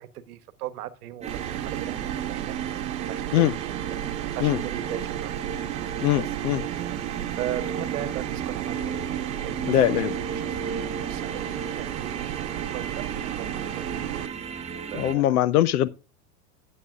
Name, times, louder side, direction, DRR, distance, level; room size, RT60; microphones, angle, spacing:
voice 1, 0.0-4.0 4.3-5.5 6.2-6.3 7.3-14.2 14.9-15.3, right 12 dB, 85° right, 1.2 m, -38 dB
sound 1, 1.2-15.1, right 6 dB, 15° right, 0.8 m, -34 dB
sound 2, 1.3-14.3, right 15 dB, 60° right, 0.7 m, -34 dB
voice 2, 6.0-6.6 9.7-10.1 14.9-15.9, left 13 dB, 85° left, 0.8 m, -22 dB
12.0 x 8.8 x 2.4 m
supercardioid pair, 130°, 44 cm